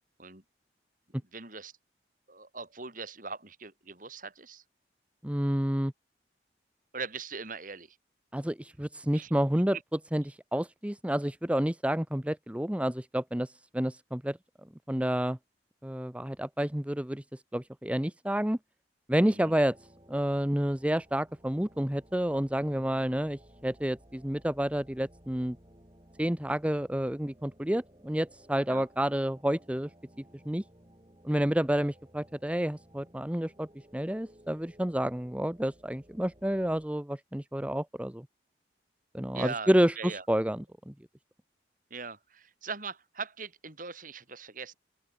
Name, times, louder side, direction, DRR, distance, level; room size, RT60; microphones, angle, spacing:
voice 1, 1.3-1.7 2.3-4.6 6.9-8.0 9.1-9.3 19.2-19.5 28.7-28.8 39.3-39.7 40.0-40.2 41.9-44.7, right 4 dB, 50° right, 4.8 m, -40 dB
voice 2, 5.2-5.9 8.3-9.8 10.1-14.4 14.9-15.4 15.8-17.2 17.5-18.6 19.1-19.8 20.1-25.6 26.2-29.9 30.4-30.6 31.2-38.3 39.1-40.9, equal, 5° right, 0.8 m, -29 dB
sound 1, 19.4-36.9, equal, 25° right, 5.8 m, -58 dB
open air
head